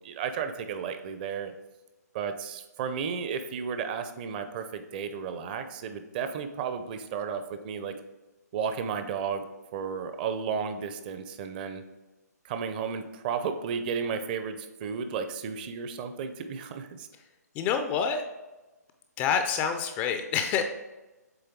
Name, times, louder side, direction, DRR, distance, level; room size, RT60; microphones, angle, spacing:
voice 1, 0.0-1.5 2.1-7.9 8.5-9.4 9.7-11.8 12.4-17.1, right 6 dB, 30° right, 8 dB, 0.6 m, -33 dB
voice 2, 17.5-18.2 19.2-20.6, left 7 dB, 20° left, 7 dB, 0.3 m, -27 dB
7.9 x 3.2 x 4.5 m, 1.1 s
hypercardioid pair, 145°, 9 cm